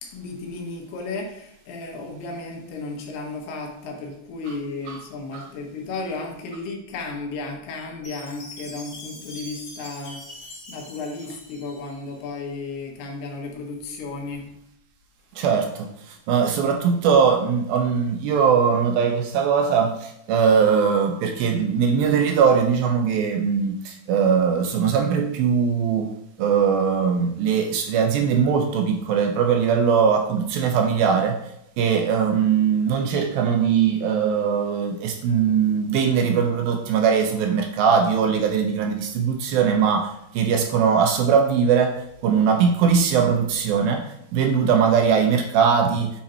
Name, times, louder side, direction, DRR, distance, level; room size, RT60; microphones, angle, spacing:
voice 1, 0.0-10.2 10.7-14.5, left 3 dB, 80° left, 1 dB, 3.2 m, -34 dB
Chime, 8.0-12.2, left 1 dB, 40° left, 3.0 m, -42 dB
voice 2, 15.4-15.9 16.3-26.1 26.4-31.4 31.8-41.9 42.2-44.0 44.3-46.1, right 6 dB, 80° right, 4 dB, 2.3 m, -20 dB
8.7 x 3.8 x 4.3 m, 0.76 s
omnidirectional pair, 4.6 m